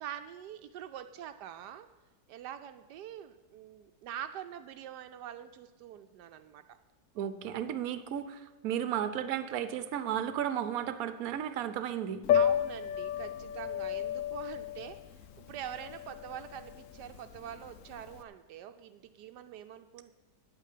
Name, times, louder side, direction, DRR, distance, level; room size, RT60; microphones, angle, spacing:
voice 1, 0.0-1.9 2.3-6.6 12.3-15.0 15.4-20.1, right 10 dB, 85° right, 8 dB, 1.2 m, -44 dB
voice 2, 7.1-12.2, right 9 dB, 65° right, 11 dB, 1.1 m, -34 dB
Piano, 12.2-18.2, left 9 dB, 65° left, 0.9 m, -32 dB
9.2 x 8.9 x 8.3 m, 1.2 s
omnidirectional pair, 1.8 m